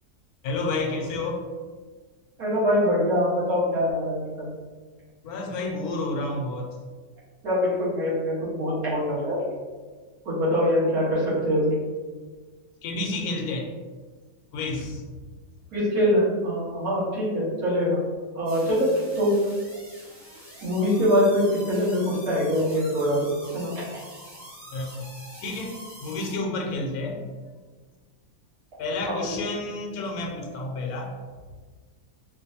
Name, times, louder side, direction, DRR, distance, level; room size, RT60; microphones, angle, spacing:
voice 1, 0.4-1.5 5.2-6.7 12.8-13.7 14.5-15.0 24.7-24.9 25.4-27.2 28.8-31.1, left 2 dB, 80° left, 2 dB, 1.1 m, -30 dB
voice 2, 2.4-4.5 7.4-9.4 10.3-11.7 15.7-18.0 18.4-18.9 19.2-19.3 20.6-23.8 29.1-29.2, equal, 70° right, -9 dB, 1.9 m, -23 dB
sound 1, 18.5-26.4, equal, 35° right, 1.3 m, -45 dB
4.6 x 2.5 x 2.7 m, 1.4 s
omnidirectional pair, 1.6 m